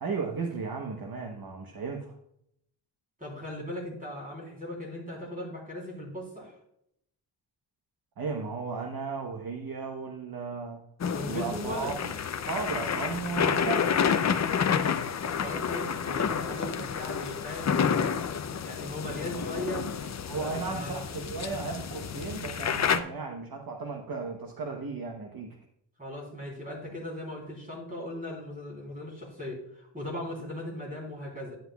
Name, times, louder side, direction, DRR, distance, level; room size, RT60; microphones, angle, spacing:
voice 1, 0.0-2.2 8.2-10.8 11.3-12.1 12.5-14.0 19.3-19.6 20.3-25.6, right 4 dB, 50° right, 2 dB, 0.9 m, -35 dB
voice 2, 3.2-6.5 11.1-11.9 15.2-17.7 18.6-19.9 20.4-21.0 26.0-31.6, left 1 dB, 20° right, -2 dB, 3.4 m, -38 dB
sound 1, 11.0-23.0, left 7 dB, 40° left, 0.5 m, -29 dB
10.5 x 9.6 x 2.3 m, 0.74 s
wide cardioid pair, 155°, 44 cm